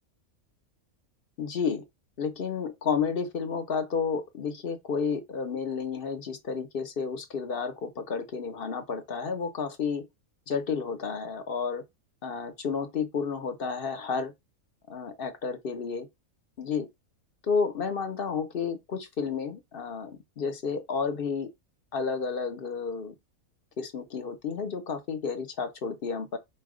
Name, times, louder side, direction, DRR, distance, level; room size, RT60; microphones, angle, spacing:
voice 1, 1.4-1.8 2.2-10.1 10.5-11.8 12.2-14.3 14.9-16.1 16.6-16.9 17.5-21.5 21.9-23.1 23.8-26.4, left 5 dB, 50° left, 0.9 m, -31 dB
4.7 x 2.2 x 4.8 m
omnidirectional pair, 1.5 m